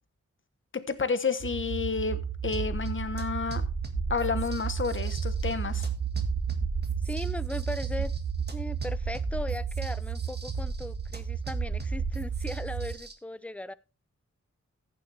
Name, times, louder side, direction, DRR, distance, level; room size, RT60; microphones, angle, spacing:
voice 1, 0.7-3.6 4.1-5.9, left 5 dB, 40° left, 1.1 m, -30 dB
sound 1, 1.4-13.0, right 8 dB, 50° right, 0.8 m, -33 dB
sound 2, 2.5-13.1, right 1 dB, 35° right, 1.7 m, -37 dB
voice 2, 7.0-8.1 8.5-13.7, left 1 dB, 5° left, 0.5 m, -38 dB
15.5 x 6.9 x 3.3 m
wide cardioid pair, 85°, 30 cm